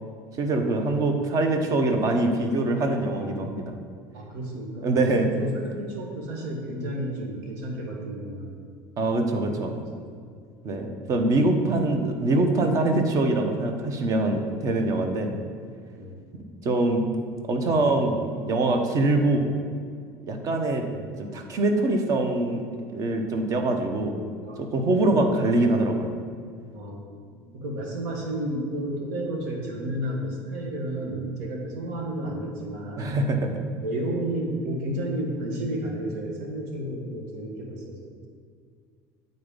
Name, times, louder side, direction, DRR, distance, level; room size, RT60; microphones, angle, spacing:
voice 1, 0.3-3.7 4.8-5.3 9.0-9.8 10.6-15.3 16.6-17.1 17.5-18.2 18.4-19.5 20.3-20.8 21.2-22.6 22.9-24.2 24.6-26.1 33.0-33.5, right 2 dB, 40° right, 5 dB, 0.9 m, -24 dB
voice 2, 4.1-8.5 9.3-10.1 16.0-16.2 17.6-18.2 20.8-21.3 24.4-25.0 25.3-25.6 26.7-33.3 33.8-38.0, right 1 dB, 85° right, 0 dB, 1.4 m, -32 dB
8.6 x 4.0 x 5.2 m, 2.2 s
cardioid pair, 135°, 9 cm